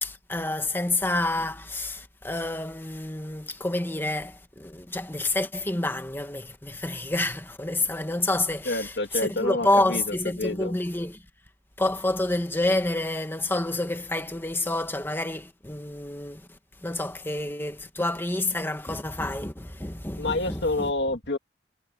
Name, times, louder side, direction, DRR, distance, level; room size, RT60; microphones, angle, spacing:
voice 1, 0.0-11.2 11.8-16.5 16.8-20.9, left 2 dB, 15° left, 1.6 m, -28 dB
voice 2, 8.7-10.8 20.2-21.4, left 2 dB, 75° left, 1.9 m, -28 dB
head